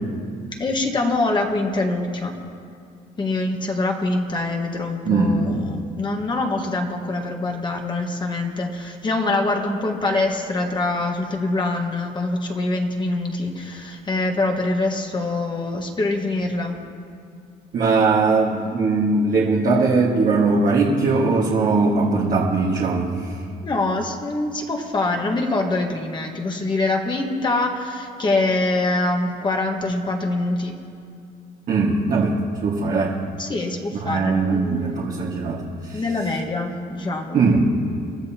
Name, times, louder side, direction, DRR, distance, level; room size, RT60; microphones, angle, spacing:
voice 1, 0.6-2.4 3.2-16.8 23.6-30.7 33.4-35.1 35.9-37.4, left 2 dB, 25° left, 2 dB, 1.6 m, -24 dB
voice 2, 5.0-5.5 17.7-23.4 31.7-33.2 34.0-35.6 35.8-36.0 37.3-37.8, right 3 dB, 50° right, -4 dB, 1.8 m, -20 dB
28.0 x 12.5 x 3.0 m, 2.4 s
cardioid pair, 110°, 17 cm